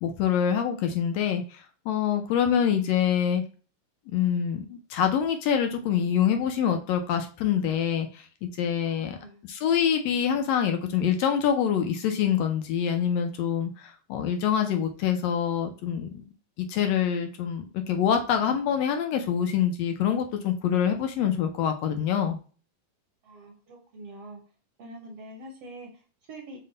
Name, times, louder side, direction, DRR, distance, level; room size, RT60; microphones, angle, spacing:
voice 1, 0.0-3.4 4.1-9.2 9.5-16.2 16.6-22.4, left 8 dB, 80° left, 5 dB, 1.5 m, -25 dB
voice 2, 8.9-9.4 23.2-24.4 24.8-26.6, right 1 dB, 70° right, 0 dB, 1.5 m, -45 dB
5.7 x 2.1 x 3.7 m, 0.38 s
omnidirectional pair, 3.5 m